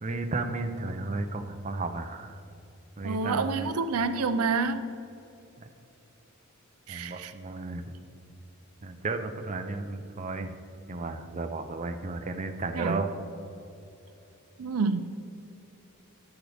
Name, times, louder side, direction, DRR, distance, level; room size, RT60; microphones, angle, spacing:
voice 1, 0.0-2.4 3.0-3.7 6.9-7.8 8.8-10.5 10.9-13.1, right 3 dB, 35° right, 6 dB, 0.5 m, -33 dB
voice 2, 3.0-4.9 6.9-7.3 12.8-13.0 14.6-15.0, right 4 dB, 80° right, 10 dB, 0.5 m, -28 dB
10.5 x 10.0 x 3.4 m, 2.7 s
head